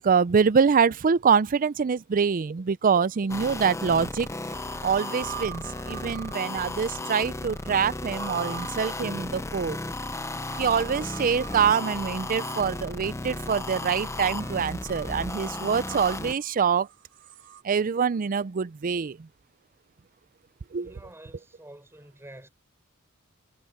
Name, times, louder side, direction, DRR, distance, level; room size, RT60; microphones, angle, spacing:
voice 1, 0.0-4.3 4.8-9.8 10.6-16.9 17.6-19.3 20.7-20.9, right 6 dB, 40° right, 0.4 m, -25 dB
sound 1, 3.1-3.2 3.7-17.6, right 9 dB, 60° right, 1.3 m, -45 dB
sound 2, 3.3-16.3, left 2 dB, 15° left, 0.6 m, -35 dB
voice 2, 20.7-22.5, right 1 dB, 10° right, 4.9 m, -48 dB
head